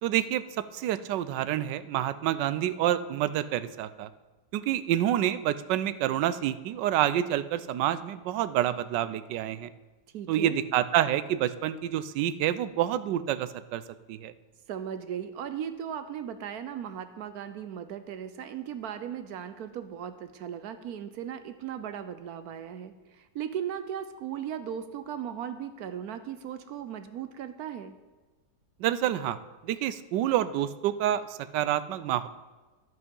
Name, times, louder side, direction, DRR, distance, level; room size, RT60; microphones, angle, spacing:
voice 1, 0.0-4.1 4.5-9.7 10.3-13.8 14.1-14.3 28.8-29.4 29.6-32.3, right 12 dB, 85° right, 15 dB, 1.2 m, -28 dB
voice 2, 10.1-10.6 14.7-28.0, right 9 dB, 70° right, 10 dB, 1.0 m, -37 dB
11.0 x 8.0 x 5.4 m, 1.3 s
omnidirectional pair, 1.9 m